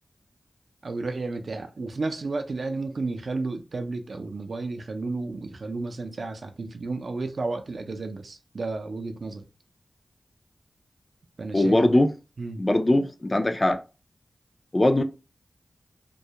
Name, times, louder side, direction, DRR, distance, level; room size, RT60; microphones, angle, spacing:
voice 1, 0.8-9.4 11.4-12.0 12.4-12.6, right 3 dB, 65° right, 0.4 m, -32 dB
voice 2, 11.5-12.1 12.6-13.8 14.7-15.0, left 1 dB, 30° left, 0.3 m, -21 dB
2.2 x 2.0 x 2.7 m
cardioid pair, 55°, 0 cm